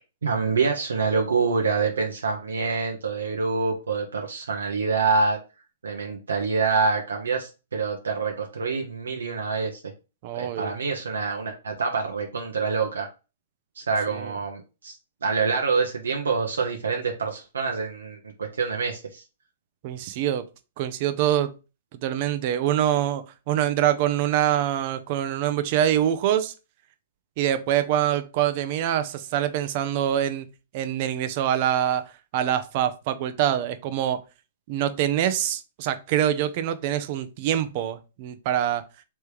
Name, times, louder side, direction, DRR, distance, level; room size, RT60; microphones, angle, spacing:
voice 1, 0.2-5.4 5.8-9.8 10.3-13.1 13.8-14.9 15.2-19.2, right 4 dB, 85° right, 0.8 m, -26 dB
voice 2, 10.2-10.7 14.1-14.3 19.8-20.5 20.8-21.5 22.0-26.5 27.4-30.5 30.7-34.2 34.7-38.8, right 11 dB, 45° right, 0.6 m, -25 dB
3.4 x 3.2 x 4.6 m
hypercardioid pair, 125°, 0 cm